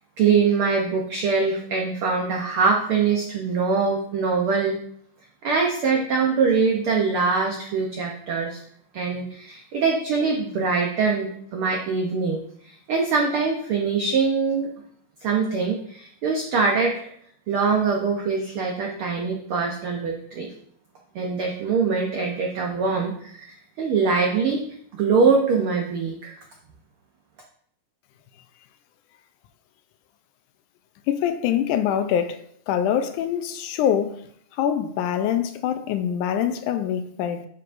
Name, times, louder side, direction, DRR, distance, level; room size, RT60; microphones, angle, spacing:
voice 1, 0.2-4.8 5.4-8.6 8.9-14.7 15.2-16.9 17.5-20.5 21.1-24.6 24.9-26.3, right 5 dB, 85° right, 1.2 m, -23 dB
voice 2, 31.1-32.4 32.7-34.2 34.5-37.5, left 9 dB, 80° left, 2.1 m, -24 dB
9.4 x 6.9 x 2.6 m
omnidirectional pair, 3.6 m